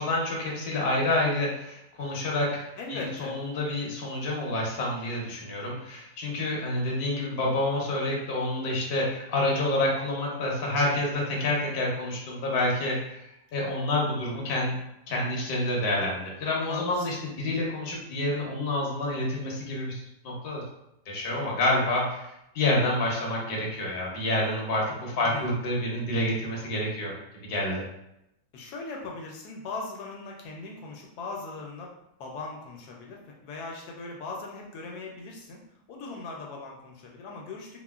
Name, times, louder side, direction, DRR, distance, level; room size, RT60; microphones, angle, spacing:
voice 1, 0.0-2.6 2.9-13.2 13.5-14.7 15.1-20.6 21.1-27.1 27.5-27.8, left 1 dB, 50° left, -2 dB, 0.7 m, -28 dB
voice 2, 2.8-3.4 16.7-17.1 25.1-25.5 28.5-31.9 32.2-35.6 35.9-37.8, left 3 dB, 75° left, 0 dB, 1.0 m, -39 dB
3.5 x 2.1 x 2.3 m, 0.84 s
omnidirectional pair, 1.7 m